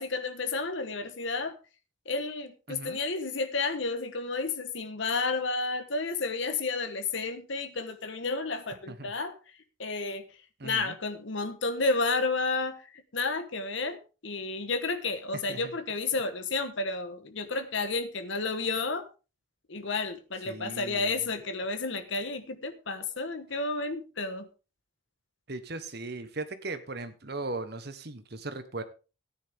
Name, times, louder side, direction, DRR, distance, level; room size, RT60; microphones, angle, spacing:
voice 1, 0.0-1.6 2.0-9.4 9.8-10.2 10.6-19.1 19.7-24.5, left 3 dB, 65° left, 9 dB, 1.2 m, -31 dB
voice 2, 2.7-3.0 8.9-9.1 10.6-10.9 15.5-15.7 20.5-21.1 25.5-28.8, right 2 dB, 50° right, 10 dB, 1.2 m, -38 dB
14.5 x 9.8 x 3.6 m, 0.32 s
head